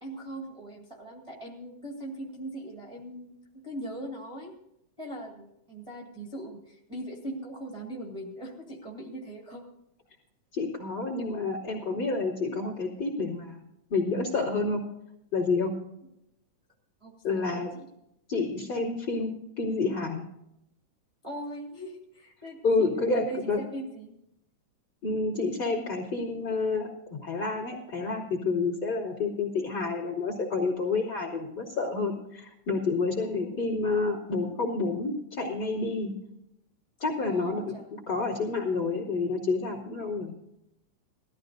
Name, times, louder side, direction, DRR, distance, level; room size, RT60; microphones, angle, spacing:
voice 1, 0.0-3.3 3.6-4.5 5.0-9.6 17.0-17.9 21.2-24.1 33.1-33.5 37.1-37.9, right 1 dB, 15° right, -4 dB, 1.5 m, -40 dB
voice 2, 10.5-13.6 13.9-14.8 15.3-15.7 17.2-17.7 18.3-19.3 19.6-20.2 22.6-23.6 25.0-26.9 27.2-36.1 37.0-37.7 38.1-40.3, left 3 dB, 35° left, -1 dB, 3.3 m, -29 dB
20.0 x 14.0 x 2.7 m, 0.82 s
omnidirectional pair, 3.6 m